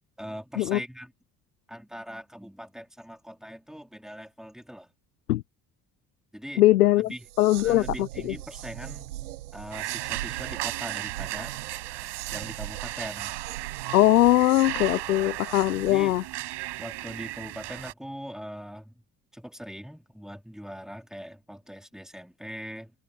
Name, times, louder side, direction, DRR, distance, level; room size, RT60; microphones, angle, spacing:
voice 1, 0.2-1.1 1.7-4.9 6.3-6.6 7.0-7.2 7.6-9.1 9.5-11.6 12.3-13.3 15.9-16.2 16.8-19.0 19.3-22.9, equal, ahead, 4.1 m, -41 dB
voice 2, 6.6-7.1 7.4-8.3 13.9-16.2, left 16 dB, 85° left, 0.7 m, -21 dB
sound 1, 7.1-16.2, right 15 dB, 85° right, 1.6 m, -41 dB
sound 2, 9.7-17.9, right 16 dB, 65° right, 6.5 m, -35 dB
hypercardioid pair, 50°, 44 cm